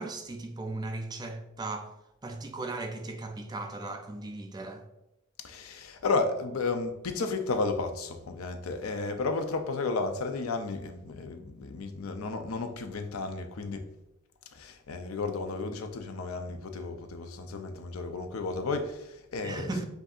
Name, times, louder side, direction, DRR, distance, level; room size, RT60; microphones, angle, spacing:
voice 1, 0.0-1.9 2.2-4.8 19.4-19.8, right 2 dB, 20° right, 0.4 m, -37 dB
voice 2, 5.4-13.9 14.5-19.8, left 3 dB, 90° left, 0.5 m, -33 dB
7.9 x 2.6 x 2.4 m
head